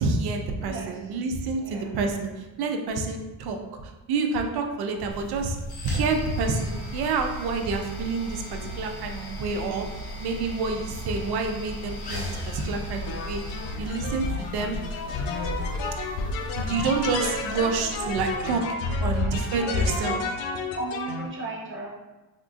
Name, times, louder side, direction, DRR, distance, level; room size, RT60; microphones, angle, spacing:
voice 1, 0.0-5.6 5.8-9.9 10.2-14.8 16.5-18.6 19.0-20.2, right 4 dB, 60° right, 5 dB, 0.6 m, -28 dB
voice 2, 0.6-1.0 1.6-1.9 9.5-9.9 19.5-20.2 20.8-21.9, right 2 dB, 25° right, -3 dB, 1.0 m, -36 dB
sound 1, 5.1-18.6, left 1 dB, 60° left, 1.2 m, -37 dB
sound 2, 13.1-21.3, left 3 dB, 80° left, 0.6 m, -30 dB
3.6 x 2.3 x 2.4 m, 1.1 s
supercardioid pair, 65°, 44 cm